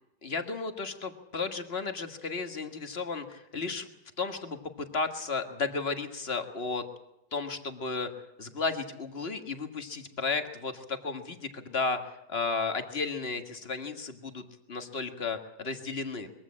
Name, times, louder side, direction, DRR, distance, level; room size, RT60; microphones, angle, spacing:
voice 1, 0.2-3.9 4.2-6.8 7.3-8.1 8.4-12.0 12.3-14.4 14.7-16.3, left 4 dB, 40° left, 7 dB, 1.8 m, -33 dB
22.0 x 15.0 x 8.6 m, 0.86 s
omnidirectional pair, 1.8 m